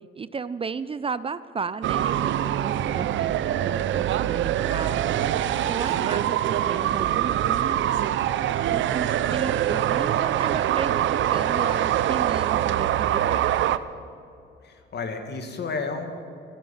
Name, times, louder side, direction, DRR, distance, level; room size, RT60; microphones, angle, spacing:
voice 1, 0.2-3.3 3.6-5.2 5.7-8.2 8.7-13.7, right 5 dB, 30° right, 15 dB, 0.5 m, -34 dB
sound 1, 1.8-13.8, right 11 dB, 70° right, 0.6 m, -24 dB
voice 2, 14.6-16.1, left 4 dB, 55° left, 6 dB, 2.1 m, -32 dB
14.5 x 13.5 x 7.1 m, 2.6 s
cardioid pair, 90°, 20 cm